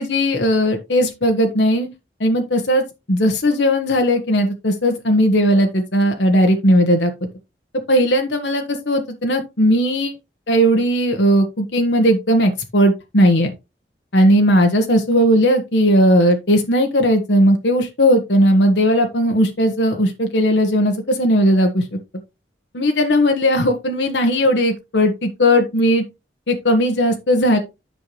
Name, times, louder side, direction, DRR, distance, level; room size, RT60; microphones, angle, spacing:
voice 1, 0.0-1.9 2.2-7.1 7.9-10.1 10.5-13.5 14.1-21.8 22.7-26.0 26.5-27.6, equal, 85° left, 4 dB, 1.3 m, -17 dB
9.8 x 5.6 x 3.2 m, 0.25 s
head